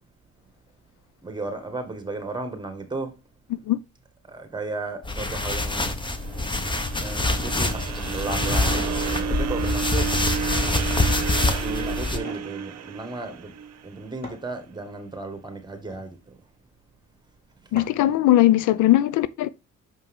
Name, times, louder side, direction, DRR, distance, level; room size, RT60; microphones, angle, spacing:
voice 1, 1.2-3.2 4.2-6.0 7.0-10.4 11.4-13.6 13.8-16.4 17.6-17.8, right 2 dB, 15° right, 1.9 m, -35 dB
Foley - Cotton clothes rustling - Fabric movement sound, 5.0-12.2, left 2 dB, 15° left, 1.1 m, -25 dB
sound 1, 6.0-14.2, right 7 dB, 60° right, 0.9 m, -32 dB
sound 2, 12.1-12.5 13.8-13.9 14.2-15.0 15.7-16.1 17.8-18.2, left 1 dB, 30° left, 3.5 m, -43 dB
voice 2, 17.7-19.5, left 14 dB, 80° left, 0.6 m, -19 dB
6.2 x 5.4 x 3.7 m
cardioid pair, 90°, 30 cm